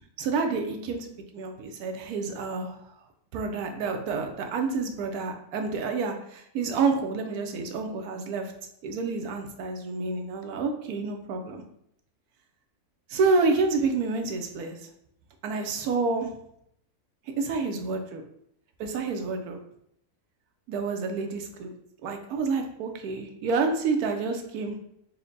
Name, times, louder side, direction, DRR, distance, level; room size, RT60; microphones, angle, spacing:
voice 1, 0.2-1.1 1.3-2.8 3.3-8.5 8.8-11.6 13.1-14.8 15.4-16.3 17.4-18.2 18.8-19.6 20.7-21.7 22.0-24.8, right 4 dB, 80° right, 4 dB, 1.1 m, -28 dB
4.3 x 2.1 x 3.9 m, 0.74 s
omnidirectional pair, 1.6 m